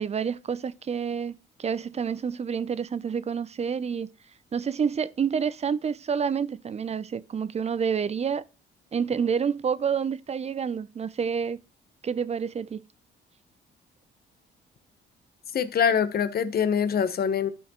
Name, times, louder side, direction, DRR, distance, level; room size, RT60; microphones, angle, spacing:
voice 1, 0.0-4.1 4.5-8.4 8.9-11.6 12.0-12.8, right 6 dB, 35° right, 0.5 m, -28 dB
voice 2, 15.5-17.5, left 7 dB, 50° left, 0.9 m, -24 dB
12.5 x 4.5 x 3.0 m
cardioid pair, 90°, 20 cm